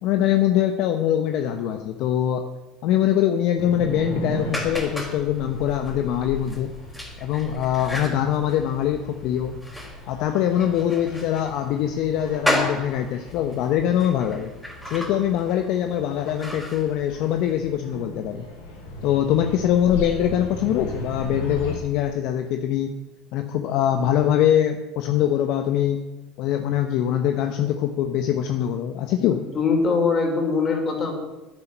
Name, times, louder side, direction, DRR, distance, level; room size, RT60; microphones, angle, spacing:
voice 1, 0.0-2.4 2.8-6.7 7.2-9.6 10.1-14.5 14.9-18.5 19.0-22.9 23.3-26.0 26.4-29.4, left 10 dB, 65° left, 6 dB, 1.1 m, -23 dB
sound 1, 3.6-21.8, left 1 dB, 90° left, 4.9 m, -37 dB
sound 2, 4.5-17.5, left 1 dB, 10° left, 4.2 m, -33 dB
voice 2, 29.3-31.1, left 4 dB, 35° left, 2 dB, 4.8 m, -22 dB
10.5 x 9.6 x 9.3 m, 1.1 s
hypercardioid pair, 85°, 0 cm